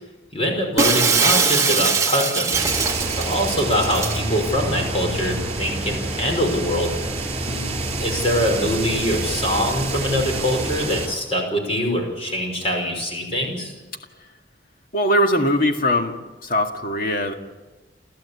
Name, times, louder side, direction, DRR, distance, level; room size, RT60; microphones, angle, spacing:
voice 1, 0.3-2.7 3.2-6.9 8.0-13.7, equal, 30° left, 1 dB, 5.5 m, -23 dB
Shatter, 0.8-4.2, right 5 dB, 15° right, 1.3 m, -21 dB
sound 1, 2.5-11.1, right 2 dB, 35° right, 4.4 m, -27 dB
voice 2, 7.5-7.9 14.9-16.2 16.4-17.3, equal, 50° left, 4 dB, 2.1 m, -21 dB
29.5 x 13.5 x 8.4 m, 1.2 s
head